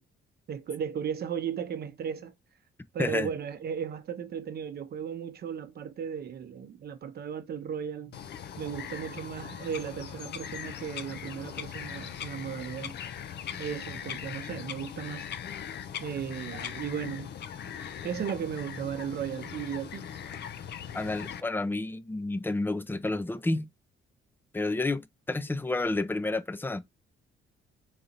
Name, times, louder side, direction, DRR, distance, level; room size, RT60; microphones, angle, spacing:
voice 1, 0.5-2.3 2.9-8.2 8.6-12.9 13.6-15.3 16.0-17.3 18.0-20.1, right 8 dB, 55° right, 0.7 m, -36 dB
voice 2, 3.0-3.3 20.9-23.7 24.5-26.8, left 2 dB, 10° left, 0.4 m, -30 dB
Bird vocalization bird call bird song, 8.1-21.4, left 8 dB, 60° left, 0.5 m, -40 dB
4.1 x 3.8 x 2.8 m
cardioid pair, 90°, 20 cm